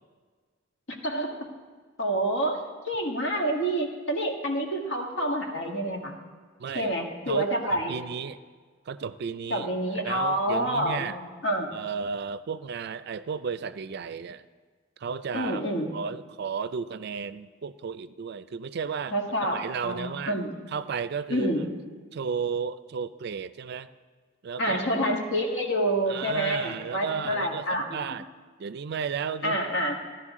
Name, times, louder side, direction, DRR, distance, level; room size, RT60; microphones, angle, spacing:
voice 1, 0.9-1.5 2.0-6.2 6.7-8.0 9.5-11.7 15.3-15.9 19.1-20.5 21.3-21.8 24.6-28.0 29.4-30.0, right 1 dB, 70° left, 1 dB, 1.7 m, -28 dB
voice 2, 6.6-6.9 7.3-8.4 8.9-9.7 10.0-11.2 11.7-14.4 15.0-15.6 15.9-19.2 19.5-20.4 20.7-21.5 22.1-23.9 24.4-25.1 26.1-28.3 28.6-29.6, right 6 dB, 55° right, 14 dB, 0.4 m, -33 dB
16.0 x 11.5 x 3.6 m, 1.5 s
head